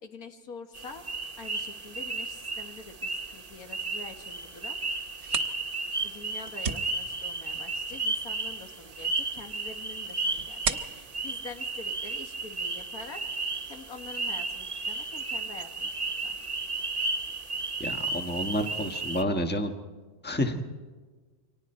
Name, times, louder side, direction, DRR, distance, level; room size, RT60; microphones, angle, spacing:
voice 1, 0.0-1.0 1.4-4.8 6.0-13.2 13.7-16.0 16.2-16.3, left 4 dB, 90° left, 5 dB, 2.1 m, -45 dB
sound 1, 0.7-19.2, right 3 dB, 30° right, 1.1 m, -34 dB
sound 2, 5.0-12.5, right 5 dB, 50° right, 1.2 m, -39 dB
voice 2, 17.8-19.7 20.2-20.6, left 1 dB, 5° left, 5 dB, 1.4 m, -29 dB
29.0 x 24.5 x 4.4 m, 1.4 s
omnidirectional pair, 1.5 m